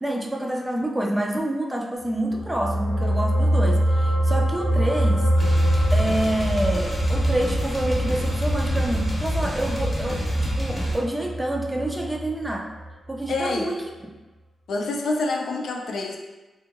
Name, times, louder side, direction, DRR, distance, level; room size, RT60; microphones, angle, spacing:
voice 1, 0.0-5.3 5.9-12.7 13.1-13.8, right 1 dB, 10° right, 0 dB, 0.3 m, -27 dB
sound 1, 2.2-12.9 13.2-13.4, right 1 dB, 85° right, 1.0 m, -24 dB
sound 2, 5.4-11.0, equal, 30° left, 0.8 m, -27 dB
voice 2, 13.3-13.7 14.7-16.2, left 3 dB, 85° left, 1 dB, 0.4 m, -27 dB
2.7 x 2.7 x 2.4 m, 1.1 s
wide cardioid pair, 140°, 0 cm